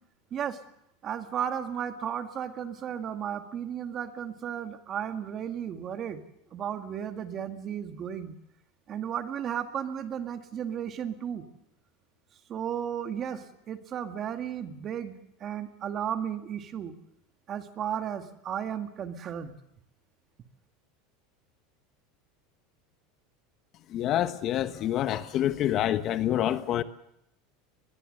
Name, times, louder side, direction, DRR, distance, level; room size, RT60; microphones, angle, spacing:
voice 1, 1.0-6.2 6.5-8.3 8.9-11.4 12.5-16.9 17.5-19.5, right 9 dB, 35° right, 2.0 m, -34 dB
voice 2, 23.9-26.8, left 12 dB, 40° left, 1.1 m, -27 dB
22.5 x 21.0 x 6.7 m
supercardioid pair, 135°, 0 cm